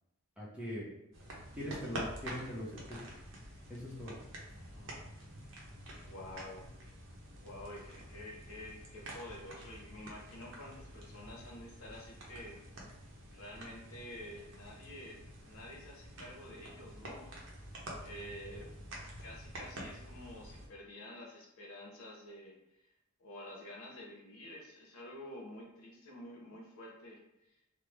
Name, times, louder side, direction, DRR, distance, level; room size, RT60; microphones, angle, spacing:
voice 1, 0.4-0.9 1.5-3.0 3.7-4.2, equal, 5° right, -6 dB, 0.7 m, -41 dB
sound 1, 1.1-20.7, right 1 dB, 65° right, 0.7 m, -48 dB
voice 2, 4.5-5.0 6.0-6.6 7.4-12.6 13.3-15.2 15.5-17.3 18.0-18.7 19.2-22.9 23.2-27.5, left 1 dB, 75° left, -2 dB, 0.9 m, -49 dB
3.1 x 2.0 x 3.4 m, 0.89 s
head